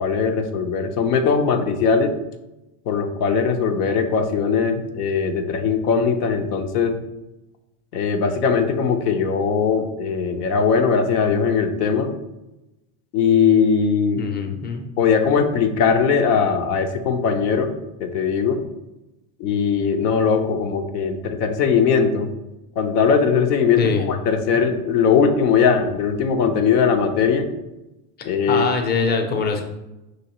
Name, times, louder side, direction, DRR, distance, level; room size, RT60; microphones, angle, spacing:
voice 1, 0.0-2.1 2.9-7.0 7.9-12.1 13.1-14.2 15.0-17.7 18.0-18.6 19.4-22.3 22.8-27.5 28.2-28.7, left 6 dB, 90° left, 5 dB, 0.8 m, -20 dB
voice 2, 14.2-14.8 23.8-24.1 24.5-24.6 28.5-29.6, left 5 dB, 20° left, 4 dB, 0.6 m, -22 dB
5.3 x 3.1 x 2.9 m, 0.98 s
supercardioid pair, 115°, 45 cm